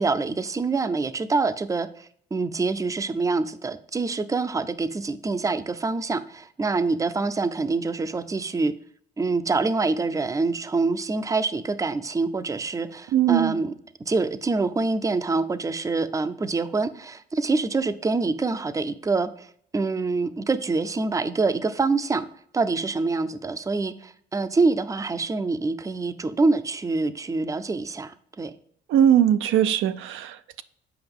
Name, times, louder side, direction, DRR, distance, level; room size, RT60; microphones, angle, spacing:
voice 1, 0.0-8.7 9.2-13.7 14.1-19.5 19.7-22.3 22.5-28.5, right 3 dB, 15° right, 0.5 m, -25 dB
voice 2, 13.1-13.6 28.9-30.6, right 10 dB, 80° right, 0.5 m, -20 dB
7.9 x 5.2 x 3.6 m
cardioid pair, 90°, 20 cm